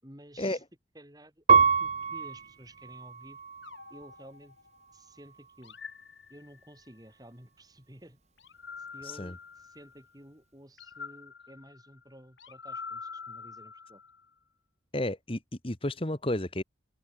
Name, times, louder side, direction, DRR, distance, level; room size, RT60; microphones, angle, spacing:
voice 1, 0.0-0.6 0.9-3.4 3.9-4.6 4.9-5.8 6.3-8.2 8.8-14.0, right 1 dB, 20° right, 5.5 m, -52 dB
Piano, 1.5-4.2 4.9-5.6, right 5 dB, 35° right, 1.0 m, -27 dB
sound 1, 3.6-5.0 5.6-6.9 8.4-10.1 10.8-14.3, left 5 dB, 75° left, 1.9 m, -46 dB
voice 2, 14.9-16.6, left 1 dB, 30° left, 1.7 m, -32 dB
head